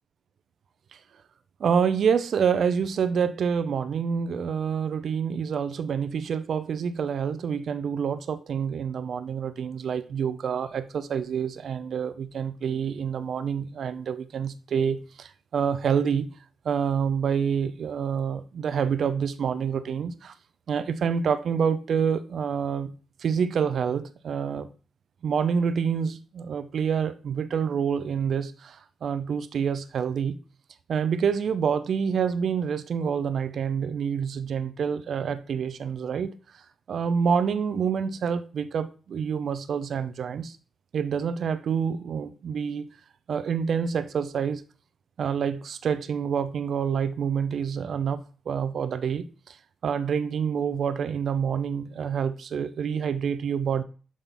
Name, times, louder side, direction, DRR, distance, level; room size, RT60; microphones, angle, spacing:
voice 1, 1.6-16.3 16.6-20.3 20.7-22.9 23.2-24.7 25.2-30.4 30.9-36.3 36.9-40.6 40.9-42.9 43.3-44.6 45.2-49.6 49.8-53.8, right 7 dB, 70° right, 0.6 m, -27 dB
7.5 x 4.0 x 3.5 m
supercardioid pair, 55°, 0 cm